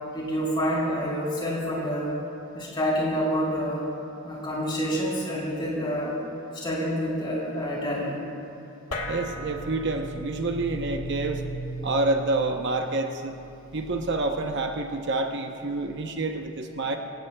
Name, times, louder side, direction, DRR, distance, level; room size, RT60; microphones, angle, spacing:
voice 1, 0.1-2.2 2.5-3.9 4.2-6.1 6.5-8.1, equal, 20° left, -6 dB, 4.0 m, -28 dB
sound 1, 8.9-15.6, right 1 dB, 85° left, 1.7 m, -38 dB
voice 2, 9.1-11.4 11.8-13.4 13.7-17.0, right 2 dB, 50° right, 4 dB, 0.8 m, -28 dB
25.5 x 17.0 x 2.3 m, 2.8 s
head